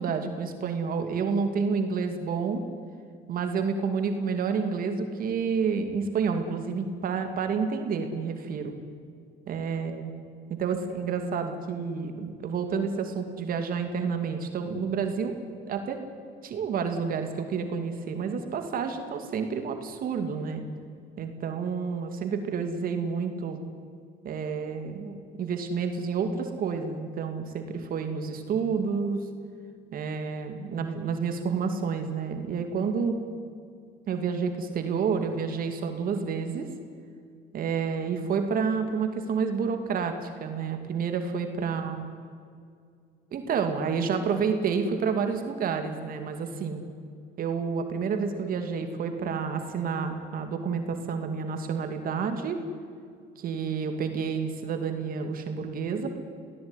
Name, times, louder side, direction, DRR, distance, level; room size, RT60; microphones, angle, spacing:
voice 1, 0.0-2.6 3.3-8.7 9.5-10.1 10.5-15.4 15.7-16.0 16.4-20.6 21.2-23.6 24.2-29.2 29.9-33.2 34.1-36.7 37.5-42.0 43.3-46.8 47.4-52.6 53.4-56.2, right 5 dB, 60° right, 6 dB, 2.6 m, -29 dB
23.0 x 17.5 x 9.9 m, 2.3 s
cardioid pair, 110°, 17 cm